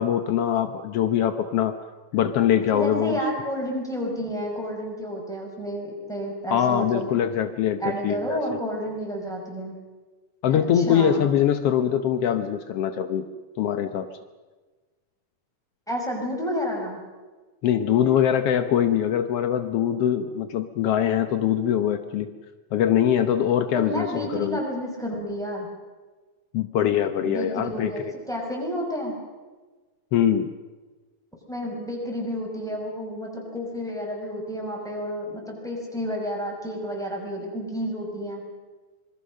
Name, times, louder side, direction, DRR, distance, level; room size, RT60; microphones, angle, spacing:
voice 1, 0.0-1.7 2.1-3.2 6.5-8.4 10.4-13.2 13.6-14.1 17.6-22.3 22.7-24.6 26.5-28.1 30.1-30.5, left 9 dB, 80° left, 9 dB, 1.3 m, -23 dB
voice 2, 2.7-7.1 7.8-9.7 10.5-11.3 15.9-17.0 23.7-25.7 27.2-29.2 31.5-38.4, equal, ahead, -1 dB, 6.1 m, -30 dB
26.0 x 22.5 x 6.5 m, 1.3 s
omnidirectional pair, 3.9 m